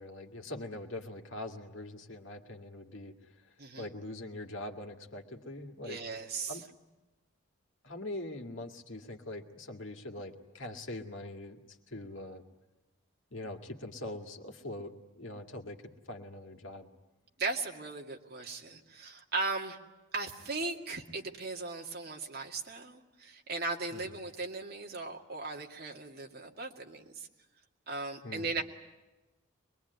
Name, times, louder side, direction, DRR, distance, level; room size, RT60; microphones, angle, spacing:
voice 1, 0.0-3.1 3.8-6.0 6.5-6.6 7.8-12.4 13.3-16.9 23.9-24.0 28.2-28.5, left 1 dB, 70° left, 4 dB, 2.1 m, -43 dB
voice 2, 5.9-6.6 17.4-19.8 20.1-27.3 27.9-28.6, right 3 dB, 50° right, 1 dB, 2.3 m, -37 dB
24.5 x 21.5 x 9.5 m, 1.1 s
head